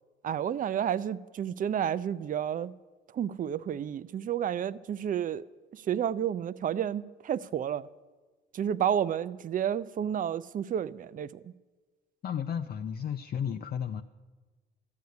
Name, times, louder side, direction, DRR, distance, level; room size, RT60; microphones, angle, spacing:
voice 1, 0.2-2.7 3.1-5.4 5.7-7.9 8.5-11.5, right 9 dB, 45° right, 0.5 m, -31 dB
voice 2, 12.2-14.0, left 8 dB, 50° left, 0.5 m, -33 dB
13.0 x 7.9 x 9.4 m
cardioid pair, 90°, 20 cm